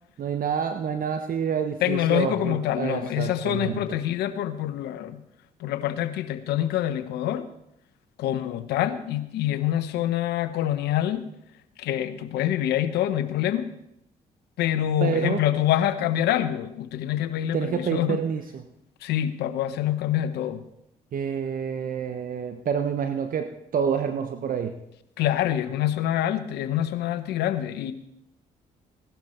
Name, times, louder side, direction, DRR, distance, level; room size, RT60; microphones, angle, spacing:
voice 1, 0.2-4.0 15.0-15.4 17.5-18.6 21.1-24.8, right 7 dB, 55° right, 8 dB, 1.0 m, -28 dB
voice 2, 1.8-5.2 5.6-7.5 8.2-11.3 11.8-13.7 14.6-18.2 19.0-20.6 25.2-27.9, left 12 dB, 80° left, 12 dB, 0.9 m, -26 dB
16.5 x 11.5 x 4.3 m, 0.78 s
supercardioid pair, 55°, 17 cm